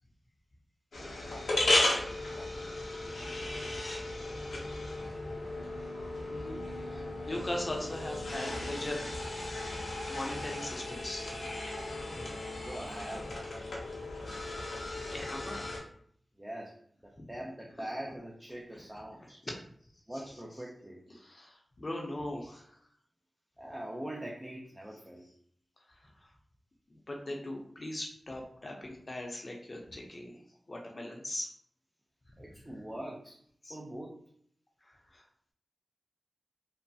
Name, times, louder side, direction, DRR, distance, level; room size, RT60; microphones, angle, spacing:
sound 1, 0.9-15.8, left 1 dB, 85° left, 0.7 m, -35 dB
voice 1, 6.2-9.5 10.0-11.5 14.8-14.9 15.1-15.7 17.2-17.4 17.8-17.9 18.7-18.8 19.2-19.5 20.1-20.6 21.1-22.8 25.9-26.3 26.9-30.4 30.7-31.5 32.3-32.4 32.6-32.8 33.6-33.8 34.8-35.2, left 1 dB, 45° left, 1 dB, 0.6 m, -41 dB
voice 2, 12.6-13.7 16.4-16.7 17.3-19.4 20.1-21.0 23.6-25.2 32.4-33.4 33.7-34.2, right 1 dB, 15° right, -2 dB, 0.5 m, -42 dB
3.0 x 2.1 x 2.7 m, 0.63 s
cardioid pair, 45°, 0 cm